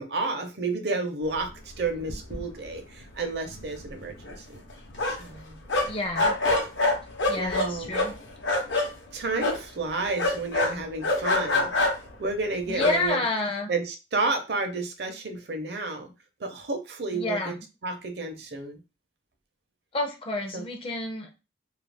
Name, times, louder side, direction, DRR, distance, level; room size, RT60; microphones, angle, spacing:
voice 1, 0.0-4.6 5.0-5.6 7.3-7.9 9.1-11.7 12.2-13.2 13.7-16.1 16.4-17.6 17.8-18.8 20.5-20.6, right 3 dB, 60° right, 5 dB, 0.6 m, -31 dB
sound 1, 1.8-1.9 2.1-2.7 3.0-3.1 3.5-5.4 5.7-8.9 9.4-9.6 10.2-12.1 12.7-13.0, left 2 dB, 75° left, 0.8 m, -26 dB
voice 2, 5.9-6.3 7.3-8.1 12.7-13.7 17.1-17.5 19.9-21.4, left 2 dB, 30° left, 4 dB, 0.4 m, -29 dB
2.4 x 2.2 x 3.3 m, 0.28 s
head